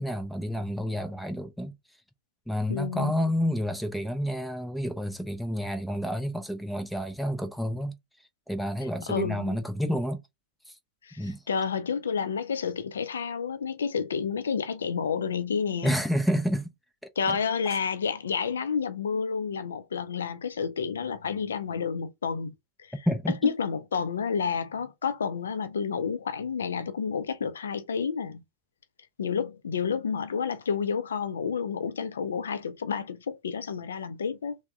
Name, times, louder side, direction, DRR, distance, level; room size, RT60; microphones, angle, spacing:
voice 1, 0.0-1.7 2.5-7.9 8.5-10.2 10.7-10.8 11.2-11.4 15.8-16.7 17.3-17.4 23.1-23.4, equal, ahead, 0.4 m, -29 dB
voice 2, 2.7-3.1 9.1-9.6 11.0-16.0 17.2-22.5 22.8-23.1 23.4-28.4 29.2-34.6, left 6 dB, 70° left, 0.4 m, -30 dB
3.4 x 2.1 x 3.5 m
figure-of-eight pair, 90°, 0 cm